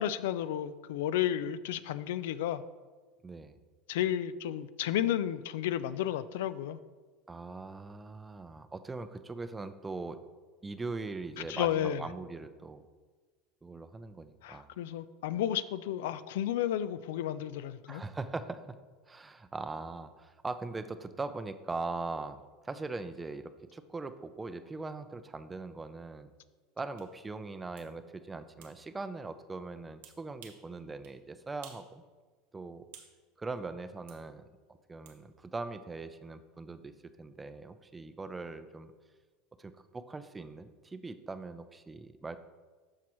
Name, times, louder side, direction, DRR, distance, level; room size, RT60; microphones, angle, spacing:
voice 1, 0.0-2.6 3.9-6.8 11.5-12.0 14.4-18.0, left 11 dB, 85° left, 15 dB, 0.3 m, -32 dB
voice 2, 3.2-3.5 7.3-10.2 10.6-12.8 13.6-14.8 17.9-18.7 19.1-22.4 22.6-26.3 26.8-32.0 32.5-32.8 33.4-34.4 34.9-36.9 37.2-38.9 39.6-42.4, right 3 dB, 15° right, 11 dB, 0.5 m, -41 dB
sound 1, 27.0-27.1 27.8-27.9 28.6-28.8 30.0-30.7 31.0-31.2 31.6-31.9 32.2-33.2 34.1-34.2 35.1-35.2, right 8 dB, 80° right, 1.1 m, -53 dB
13.0 x 4.7 x 3.0 m, 1.4 s
supercardioid pair, 125°, 0 cm